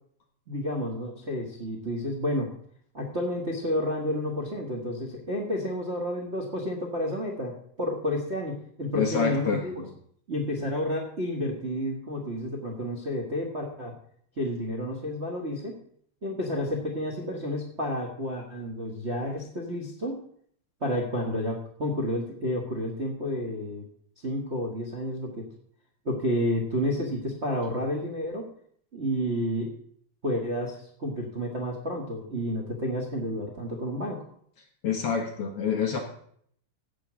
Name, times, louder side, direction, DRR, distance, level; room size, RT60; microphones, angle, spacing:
voice 1, 0.5-2.5 2.9-9.9 10.3-13.9 14.4-15.8 16.2-20.2 20.8-23.9 24.2-25.4 26.0-28.5 28.9-29.7 30.2-34.2, equal, 90° right, -1 dB, 0.6 m, -30 dB
voice 2, 8.9-9.6 34.8-36.0, left 6 dB, 60° left, 3 dB, 1.7 m, -27 dB
15.5 x 5.4 x 6.1 m, 0.64 s
omnidirectional pair, 4.0 m